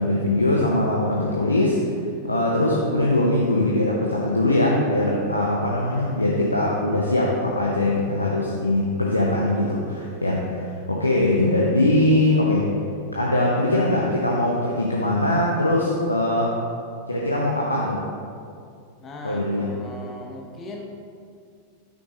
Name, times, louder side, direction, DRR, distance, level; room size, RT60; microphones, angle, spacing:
voice 1, 0.0-1.8 2.2-12.7 13.1-16.5 17.1-18.0 19.2-19.7, left 1 dB, 80° left, -3 dB, 0.7 m, -21 dB
voice 2, 2.0-2.4 19.0-20.9, left 2 dB, 25° left, 1 dB, 1.1 m, -39 dB
6.4 x 5.8 x 3.8 m, 2.3 s
figure-of-eight pair, 90°, 0 cm